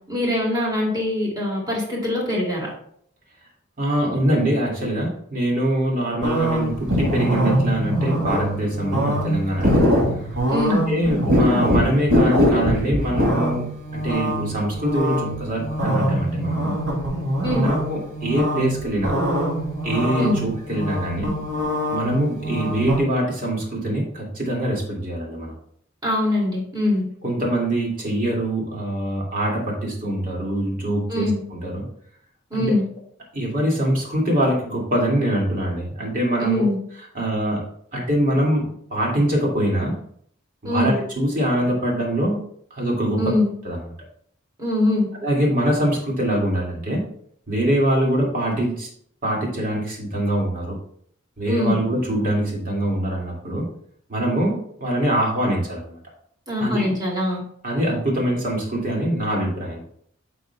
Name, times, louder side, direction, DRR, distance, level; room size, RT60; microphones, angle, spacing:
voice 1, 0.1-2.7 10.5-10.9 17.4-17.7 20.2-20.4 26.0-27.0 31.1-31.4 32.5-32.8 36.4-36.8 40.6-41.0 43.2-43.5 44.6-45.1 51.5-51.8 56.5-57.4, left 1 dB, 20° right, -4 dB, 2.6 m, -22 dB
voice 2, 3.8-9.8 10.9-13.7 13.9-16.8 17.6-19.1 19.8-21.4 21.9-25.5 27.2-31.9 32.5-32.7 33.3-36.7 37.1-37.6 37.9-40.0 40.6-42.4 42.7-43.3 43.6-43.8 45.2-47.0 47.5-48.9 49.2-50.8 51.4-53.7 54.1-56.0 56.6-56.9 57.6-59.8, right 1 dB, 45° right, -2 dB, 2.3 m, -23 dB
sound 1, 6.2-23.0, equal, 80° right, 2.8 m, -23 dB
10.0 x 6.1 x 2.3 m, 0.64 s
head